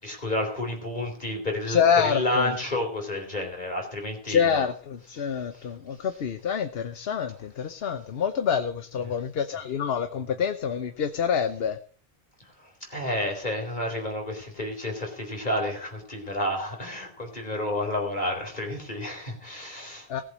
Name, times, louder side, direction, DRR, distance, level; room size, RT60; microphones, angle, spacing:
voice 1, 0.0-4.7 5.1-5.3 5.6-5.7 7.2-7.3 9.0-9.1 12.9-20.2, left 1 dB, 45° left, 2 dB, 4.2 m, -30 dB
voice 2, 1.7-2.5 4.3-11.8 20.1-20.2, left 7 dB, 70° left, 10 dB, 1.1 m, -26 dB
18.5 x 7.6 x 6.2 m, 0.43 s
omnidirectional pair, 1.1 m